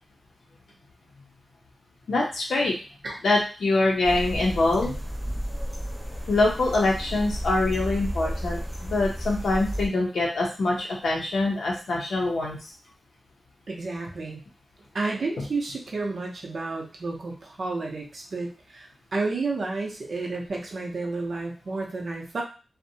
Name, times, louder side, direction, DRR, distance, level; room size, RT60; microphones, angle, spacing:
voice 1, 2.1-2.7 3.2-4.9 6.3-12.6, left 2 dB, 75° left, -2 dB, 0.5 m, -24 dB
sound 1, 4.0-9.9, equal, 10° right, 0.8 m, -32 dB
voice 2, 13.7-14.4 14.9-18.9 19.1-22.4, right 3 dB, 50° right, 0 dB, 0.6 m, -31 dB
2.6 x 2.1 x 2.7 m, 0.35 s
wide cardioid pair, 175°, 0 cm